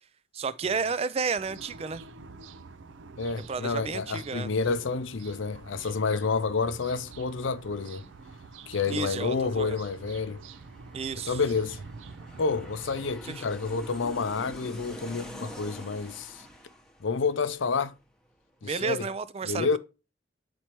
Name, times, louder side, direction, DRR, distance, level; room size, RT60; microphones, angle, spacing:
voice 1, 0.3-2.0 3.5-4.5 8.9-9.8 10.9-11.4 13.3-13.4 18.6-19.8, right 5 dB, 35° right, 0.4 m, -31 dB
sound 1, 1.3-13.1, right 4 dB, 80° right, 0.5 m, -47 dB
voice 2, 3.2-8.1 8.7-10.4 11.2-11.8 12.4-16.4 17.0-17.9 18.6-19.1 19.4-19.8, left 4 dB, 85° left, 0.6 m, -29 dB
Aircraft, 7.1-18.4 18.7-18.8, equal, 5° left, 0.9 m, -47 dB
8.4 x 4.4 x 3.0 m
head